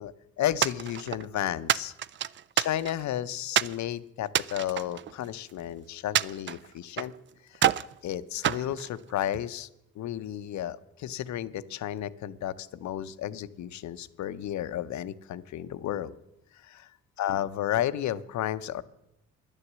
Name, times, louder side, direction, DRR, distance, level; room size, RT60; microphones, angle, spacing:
voice 1, 0.0-1.9 2.6-7.1 7.5-7.6 8.0-9.7 9.9-16.1 16.5-16.9 17.2-18.8, left 12 dB, 70° left, 14 dB, 0.7 m, -32 dB
sound 1, 0.6-1.3 1.7-3.1 3.5-3.8 4.3-5.6 6.1-7.2 7.5-7.9 8.4-9.5, right 10 dB, 40° right, 0.4 m, -28 dB
10.5 x 9.9 x 7.4 m, 0.85 s
cardioid pair, 90°, 30 cm